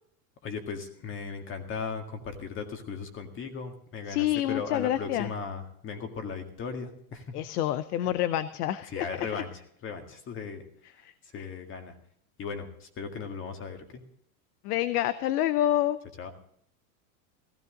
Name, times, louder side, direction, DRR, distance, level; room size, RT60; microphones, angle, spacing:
voice 1, 0.4-7.4 8.0-8.1 8.9-10.6 11.3-11.9 12.4-14.0 16.2-16.3, left 5 dB, 25° left, 5 dB, 1.9 m, -37 dB
voice 2, 4.1-5.3 7.3-9.3 11.0-11.5 14.6-16.0, left 13 dB, 80° left, 14 dB, 0.8 m, -28 dB
16.5 x 15.0 x 3.9 m, 0.66 s
supercardioid pair, 150°, 45 cm